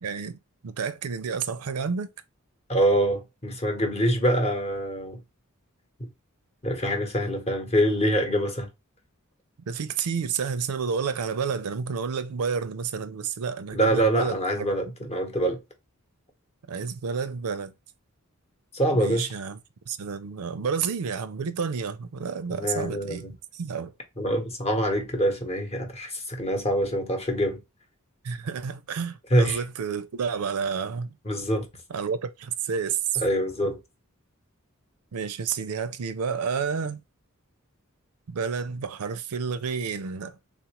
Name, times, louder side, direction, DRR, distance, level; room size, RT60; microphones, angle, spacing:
voice 1, 0.0-0.4 0.6-2.1 9.7-14.7 16.7-17.7 18.9-19.6 19.9-23.9 28.2-31.1 31.9-33.2 35.1-37.0 38.3-40.4, right 6 dB, 85° right, 0.5 m, -30 dB
voice 2, 2.7-5.2 6.6-8.7 13.7-15.6 18.7-19.3 22.5-23.3 24.2-27.6 29.3-29.6 31.2-31.7 33.2-33.8, right 1 dB, 30° left, 0.9 m, -25 dB
3.6 x 2.4 x 2.9 m
head